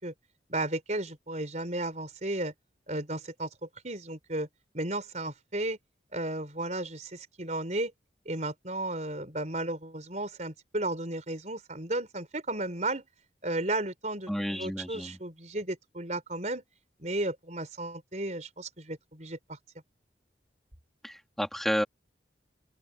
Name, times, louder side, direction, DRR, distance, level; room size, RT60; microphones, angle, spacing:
voice 1, 0.5-2.5 2.9-4.5 4.7-5.8 6.1-7.9 8.2-13.0 13.4-16.6 17.0-19.6, right 2 dB, 40° right, 4.9 m, -34 dB
voice 2, 14.3-15.2 21.0-21.8, equal, ahead, 2.9 m, -31 dB
open air
head